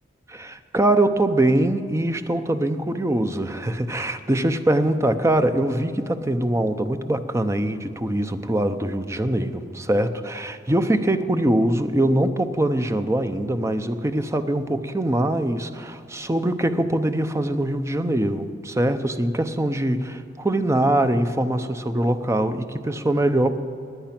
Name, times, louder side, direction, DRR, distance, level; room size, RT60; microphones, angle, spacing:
voice 1, 0.3-23.6, right 1 dB, 15° right, 9 dB, 0.6 m, -23 dB
19.0 x 9.4 x 5.9 m, 2.5 s
head